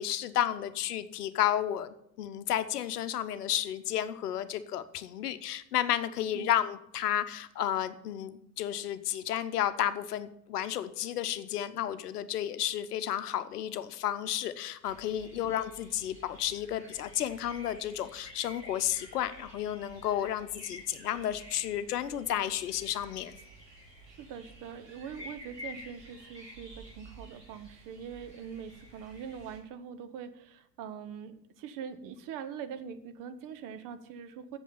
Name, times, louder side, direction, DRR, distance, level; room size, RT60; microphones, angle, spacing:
voice 1, 0.0-23.4, left 11 dB, 65° left, 12 dB, 0.9 m, -32 dB
sound 1, 14.8-29.6, equal, 75° right, 5.5 m, -51 dB
voice 2, 24.1-34.6, right 7 dB, 40° right, 11 dB, 1.1 m, -43 dB
8.3 x 7.2 x 8.6 m, 0.78 s
figure-of-eight pair, 75°, 49 cm